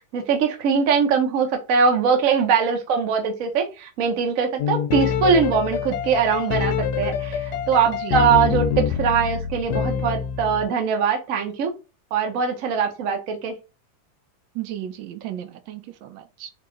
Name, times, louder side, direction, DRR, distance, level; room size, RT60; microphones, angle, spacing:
voice 1, 0.1-11.7 12.1-13.5, right 6 dB, 55° right, 1.0 m, -22 dB
sound 1, 4.6-10.7, left 8 dB, 70° left, 1.0 m, -25 dB
voice 2, 7.9-8.2 14.5-16.5, right 12 dB, 75° right, 1.3 m, -34 dB
3.7 x 2.8 x 3.8 m
omnidirectional pair, 2.1 m